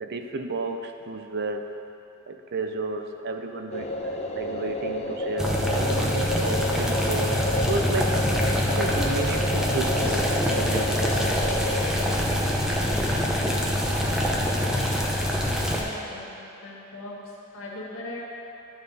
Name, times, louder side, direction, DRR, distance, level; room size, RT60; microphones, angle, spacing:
voice 1, 0.0-1.7 2.3-4.0 4.3-8.2 8.8-11.0, right 3 dB, 50° right, 6 dB, 0.5 m, -32 dB
sound 1, 3.7-12.2, left 1 dB, 30° left, 0.6 m, -31 dB
sound 2, 5.4-15.8, equal, 5° right, 0.7 m, -25 dB
voice 2, 15.7-18.3, left 1 dB, 75° left, -4 dB, 1.6 m, -39 dB
11.5 x 5.4 x 4.1 m, 2.9 s
head